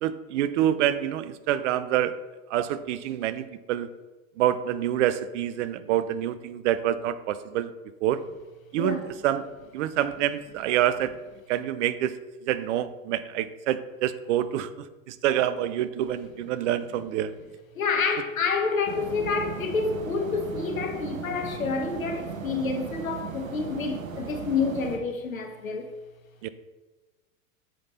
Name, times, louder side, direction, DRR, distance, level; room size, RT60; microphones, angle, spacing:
voice 1, 0.0-2.1 2.5-3.9 4.4-7.7 8.0-8.2 8.7-9.5 9.7-11.1 11.5-17.3 26.4-26.5, right 11 dB, 65° right, 0.6 m, -27 dB
voice 2, 17.7-25.9, left 4 dB, 90° left, 1.1 m, -28 dB
sound 1, 18.9-25.0, right 6 dB, 85° right, 1.0 m, -37 dB
7.7 x 5.3 x 4.1 m
hypercardioid pair, 90°, 40 cm